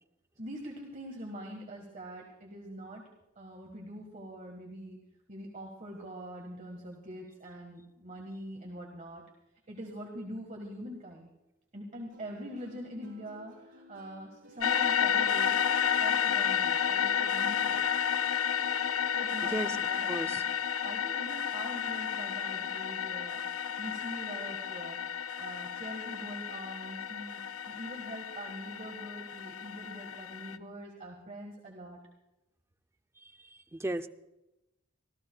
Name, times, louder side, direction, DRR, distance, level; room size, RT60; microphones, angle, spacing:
voice 1, 0.4-3.1 3.3-5.0 5.3-9.2 9.7-11.3 11.7-15.6 16.0-17.9 19.1-20.4 20.8-32.0, right 1 dB, 40° right, 1 dB, 1.5 m, -44 dB
Plucked string instrument, 12.1-19.5, left 1 dB, 65° right, 6.3 m, -55 dB
sound 1, 14.6-30.6, left 8 dB, 85° left, 0.5 m, -31 dB
voice 2, 20.1-20.4 33.2-34.1, right 1 dB, 15° right, 8 dB, 0.4 m, -36 dB
25.5 x 14.5 x 2.3 m, 0.95 s
head